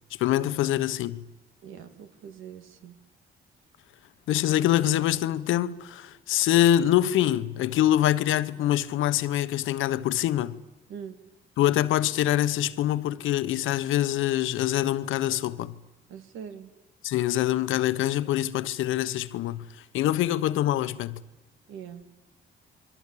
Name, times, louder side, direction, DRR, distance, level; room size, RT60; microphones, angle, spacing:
voice 1, 0.2-1.3 4.3-10.6 11.6-15.7 17.0-19.7 19.9-21.2, left 12 dB, 85° left, 1.1 m, -25 dB
voice 2, 1.6-3.0 10.9-11.2 16.1-16.7 21.7-22.0, right 7 dB, 90° right, 2.8 m, -42 dB
28.0 x 23.5 x 8.6 m
cardioid pair, 90°, 20 cm